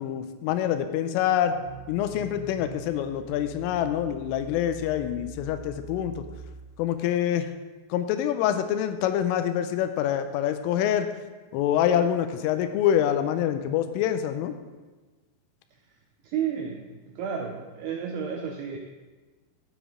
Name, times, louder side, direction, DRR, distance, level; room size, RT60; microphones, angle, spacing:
voice 1, 0.0-1.5 1.9-6.2 6.8-7.5 7.9-11.1 11.5-14.6, left 10 dB, 90° left, 9 dB, 3.3 m, -26 dB
sound 1, 1.5-7.1, right 7 dB, 55° left, 2.4 m, -44 dB
voice 2, 16.2-18.8, right 7 dB, 85° right, 2 dB, 2.3 m, -32 dB
15.0 x 7.2 x 3.7 m, 1.3 s
omnidirectional pair, 5.7 m